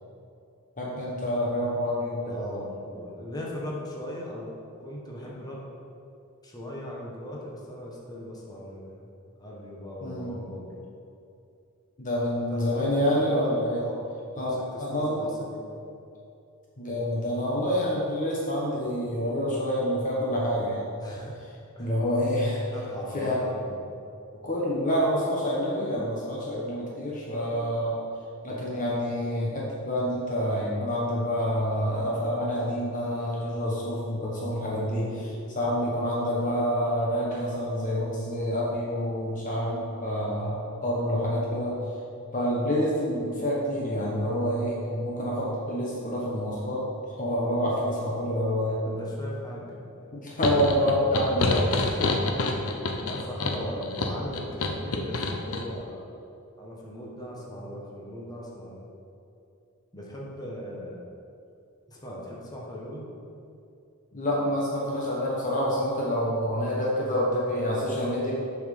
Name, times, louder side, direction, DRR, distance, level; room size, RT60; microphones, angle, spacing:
voice 1, 0.8-2.4 10.0-10.4 12.0-13.8 14.4-15.2 16.8-20.9 21.8-22.6 23.1-23.3 24.4-28.0 28.4-41.8 42.3-46.8 47.2-48.8 50.1-51.7 64.1-68.3, equal, 35° left, -4 dB, 1.1 m, -27 dB
voice 2, 2.3-4.5 4.8-5.7 6.4-9.1 9.4-10.8 12.3-14.5 14.7-15.8 21.0-21.3 21.7-21.9 22.7-23.8 34.7-35.4 48.8-49.9 51.7-52.2 52.4-52.6 53.0-56.2 56.6-58.8 59.9-61.0 61.9-63.1, equal, 20° left, -4 dB, 1.3 m, -39 dB
sound 1, 50.4-55.7, left 3 dB, 70° left, 0.7 m, -27 dB
6.9 x 5.9 x 5.3 m, 2.6 s
head